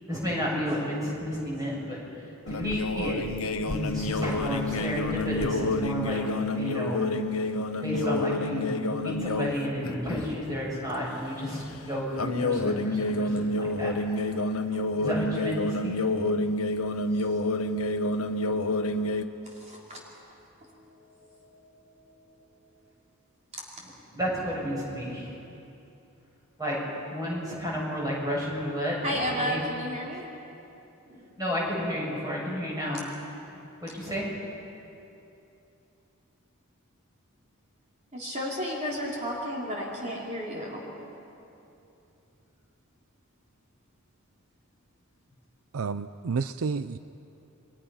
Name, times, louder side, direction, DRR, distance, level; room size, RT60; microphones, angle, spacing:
voice 1, 0.1-3.3 3.7-6.2 6.6-7.0 7.8-14.2 15.0-15.9 23.8-25.4 26.6-26.8 27.1-29.7 31.4-33.0 33.8-34.2, equal, 15° right, -4 dB, 7.2 m, -31 dB
sound 1, 2.5-9.5 9.8-10.3 12.2-19.2, left 2 dB, 80° left, 1.0 m, -28 dB
voice 2, 19.6-20.0 20.7-20.8 21.3-21.4 29.0-30.2 31.1-31.4 38.1-40.8, equal, 35° right, -4 dB, 3.7 m, -32 dB
voice 3, 45.7-47.0, right 5 dB, 80° right, 12 dB, 0.5 m, -30 dB
30.0 x 23.0 x 5.7 m, 2.8 s
head